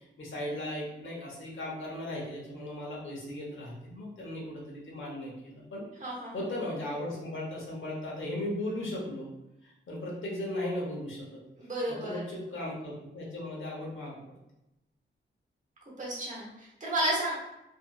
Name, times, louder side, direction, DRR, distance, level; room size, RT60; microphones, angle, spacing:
voice 1, 0.0-5.9 6.3-9.3 9.6-11.4 11.9-14.2, left 1 dB, 75° left, -4 dB, 0.9 m, -37 dB
voice 2, 6.0-6.3 11.6-12.2 16.0-17.4, right 1 dB, 40° right, -4 dB, 0.9 m, -32 dB
2.7 x 2.5 x 2.3 m, 0.90 s
wide cardioid pair, 155°, 20 cm